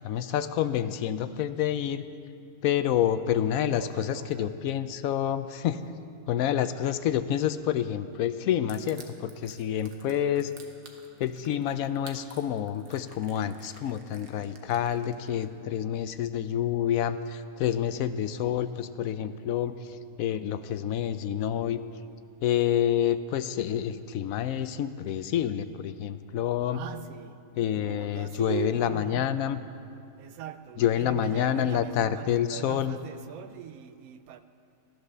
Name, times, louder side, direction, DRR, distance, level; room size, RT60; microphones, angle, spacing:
voice 1, 0.0-2.0 2.6-5.8 6.3-10.5 11.2-21.8 22.4-26.8 27.6-29.6 30.8-33.0, left 10 dB, 70° left, 0.9 m, -28 dB
voice 2, 3.5-4.5 26.7-29.3 30.2-34.4, right 8 dB, 70° right, 1.1 m, -40 dB
Crushing, 8.7-15.4, right 5 dB, 90° right, 1.8 m, -51 dB
13.5 x 11.5 x 6.7 m
omnidirectional pair, 1.6 m